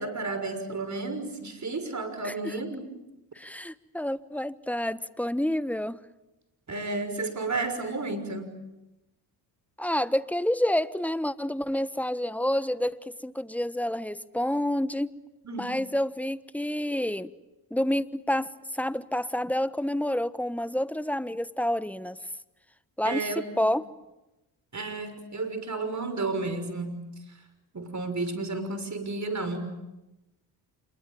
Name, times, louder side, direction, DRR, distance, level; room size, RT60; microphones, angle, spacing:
voice 1, 0.0-2.8 6.7-8.5 15.4-15.7 23.0-23.7 24.7-27.0 27.7-29.8, right 3 dB, 35° right, 10 dB, 6.2 m, -32 dB
voice 2, 2.2-2.6 3.3-6.0 9.8-15.1 15.6-17.3 17.7-22.2 23.0-23.8, left 1 dB, 5° left, 15 dB, 1.2 m, -29 dB
27.0 x 22.5 x 9.2 m, 0.97 s
supercardioid pair, 60°, 48 cm